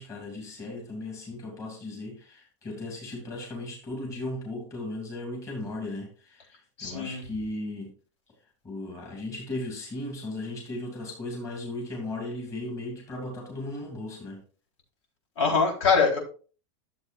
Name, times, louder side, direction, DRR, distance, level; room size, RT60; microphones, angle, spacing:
voice 1, 0.0-7.9 8.6-14.4, left 2 dB, 20° left, 0 dB, 2.6 m, -36 dB
voice 2, 6.8-7.2 15.4-16.2, left 5 dB, 80° left, 0 dB, 3.9 m, -23 dB
12.5 x 7.4 x 2.5 m, 0.37 s
supercardioid pair, 170°, 15 cm